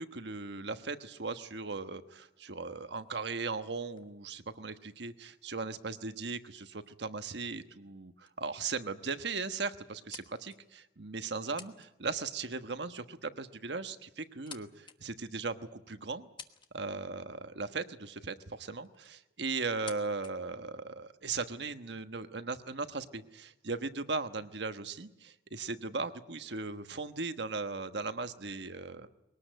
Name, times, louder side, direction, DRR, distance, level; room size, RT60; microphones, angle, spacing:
voice 1, 0.0-16.3 16.7-29.1, right 4 dB, 70° right, 9 dB, 1.2 m, -38 dB
sound 1, 2.9-5.5 6.4-6.5 6.8-7.1 7.7-8.0 8.3-8.4 8.7-9.2 9.7-10.8 11.4-11.9 12.2-12.4 13.5-13.6 14.1-15.0 15.5-15.6 16.1-17.0 18.3-18.4 18.8-19.2 19.7-20.3, left 6 dB, 25° left, 1.2 m, -52 dB
22.0 x 18.5 x 9.1 m, 0.93 s
head